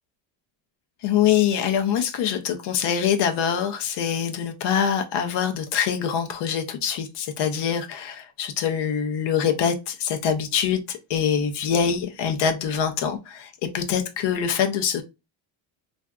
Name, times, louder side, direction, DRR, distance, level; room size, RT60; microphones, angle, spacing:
voice 1, 1.0-15.0, left 8 dB, 60° left, 0.7 m, -24 dB
3.3 x 2.5 x 2.3 m
cardioid pair, 130°, 47 cm